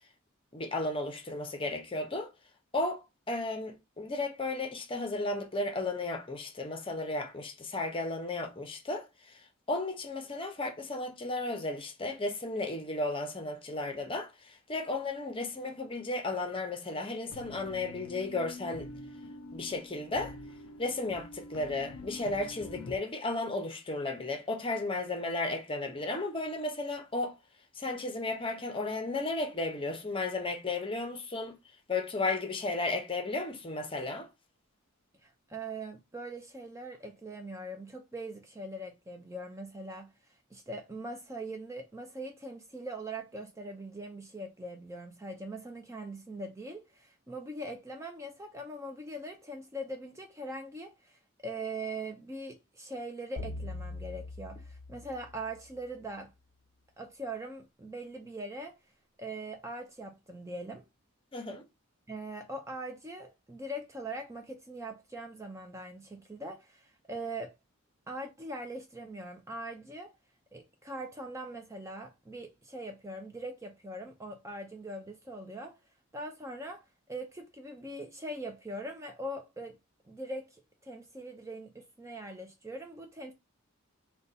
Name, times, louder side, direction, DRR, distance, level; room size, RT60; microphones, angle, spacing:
voice 1, 0.5-2.3 2.7-18.9 19.5-20.4 20.8-27.4 27.7-31.6 31.9-34.3 61.3-61.6, left 2 dB, 25° left, 0.7 m, -34 dB
sound 1, 17.3-22.9, left 2 dB, 80° left, 0.5 m, -46 dB
voice 2, 35.2-40.1 40.5-56.3 57.0-58.8 59.2-60.8 62.1-67.6 68.1-70.1 70.5-75.8 76.1-79.8 80.1-83.3, right 1 dB, 15° right, 0.4 m, -41 dB
sound 2, 53.4-55.8, left 2 dB, 60° right, 1.1 m, -42 dB
3.9 x 2.2 x 4.0 m
head